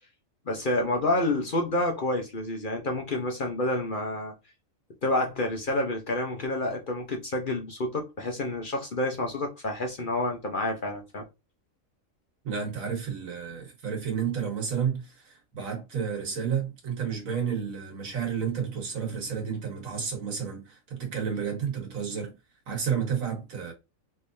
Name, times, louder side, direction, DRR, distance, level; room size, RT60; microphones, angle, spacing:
voice 1, 0.5-4.3 5.0-11.2, left 1 dB, 45° left, 0.8 m, -29 dB
voice 2, 12.4-22.4 22.7-23.7, right 7 dB, 75° right, 1.6 m, -31 dB
3.8 x 3.1 x 2.5 m
omnidirectional pair, 1.4 m